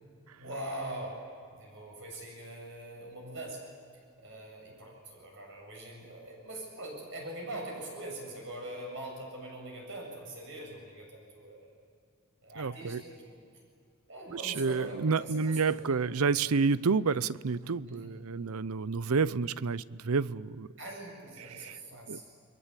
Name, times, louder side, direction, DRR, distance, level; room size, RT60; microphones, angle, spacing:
voice 1, 0.4-1.2 1.5-3.6 4.2-11.7 12.4-13.5 14.1-16.3 17.9-18.1 20.8-22.2, right 1 dB, 60° right, 7.4 m, -43 dB
voice 2, 12.6-13.0 14.3-20.7 21.5-21.8 22.1-22.2, right 4 dB, 90° right, 0.6 m, -29 dB
29.5 x 22.5 x 8.3 m
head